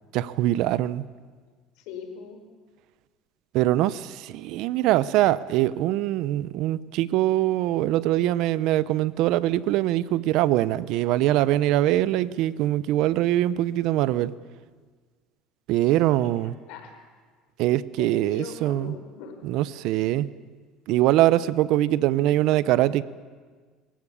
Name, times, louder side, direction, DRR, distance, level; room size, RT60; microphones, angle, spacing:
voice 1, 0.1-1.1 3.5-14.3 15.7-16.5 17.6-18.9 19.4-20.3 20.9-23.0, right 14 dB, 70° right, 17 dB, 0.7 m, -23 dB
voice 2, 1.8-2.4 15.8-17.0 18.0-19.4 19.9-20.0, left 6 dB, 75° left, 5 dB, 4.8 m, -41 dB
26.0 x 15.5 x 8.6 m, 1.5 s
supercardioid pair, 110°, 0 cm